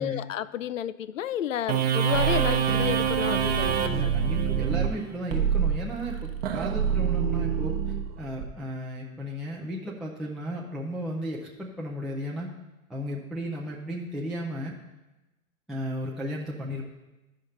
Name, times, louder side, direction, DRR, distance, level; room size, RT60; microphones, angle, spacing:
voice 1, 0.0-4.1, left 10 dB, 70° left, 16 dB, 0.5 m, -31 dB
sound 1, 1.7-8.5, right 8 dB, 50° right, 0.9 m, -25 dB
voice 2, 3.9-7.8 8.2-12.5 12.9-14.7 15.7-16.8, equal, ahead, -3 dB, 0.3 m, -34 dB
14.0 x 5.1 x 4.1 m, 1.1 s
figure-of-eight pair, 95°, 40 cm